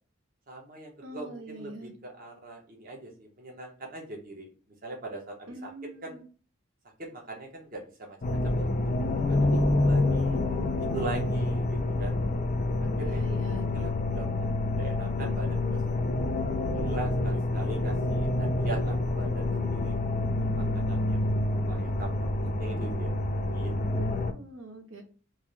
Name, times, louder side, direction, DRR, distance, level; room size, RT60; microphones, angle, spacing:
voice 1, 0.5-4.5 4.8-5.7 6.0-6.2 7.0-8.7 8.9-10.4 10.8-12.2 13.0-13.3 13.7-16.1 16.7-19.9 20.6-21.3 21.7-23.1 23.5-24.1, right 2 dB, 45° right, 0 dB, 1.1 m, -41 dB
voice 2, 1.0-1.9 5.5-6.3 13.0-13.6 20.4-20.9 24.3-25.0, right 1 dB, 70° right, 4 dB, 0.9 m, -44 dB
sound 1, 8.2-24.3, left 2 dB, 40° left, 0.5 m, -27 dB
3.6 x 2.6 x 3.2 m, 0.38 s
head